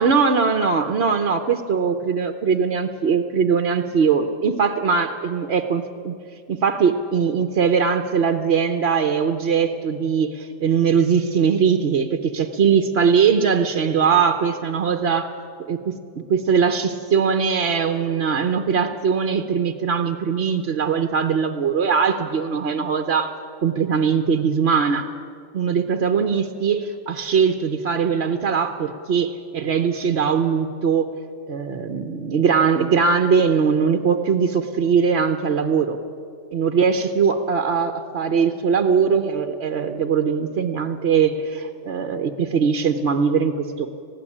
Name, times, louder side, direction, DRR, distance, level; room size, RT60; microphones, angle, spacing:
voice 1, 0.0-6.1 6.5-15.3 15.7-16.0 16.3-23.3 23.6-25.1 25.5-31.1 31.5-36.0 36.5-43.9, right 6 dB, 55° right, 7 dB, 1.1 m, -21 dB
20.0 x 15.5 x 9.9 m, 2.5 s
omnidirectional pair, 1.4 m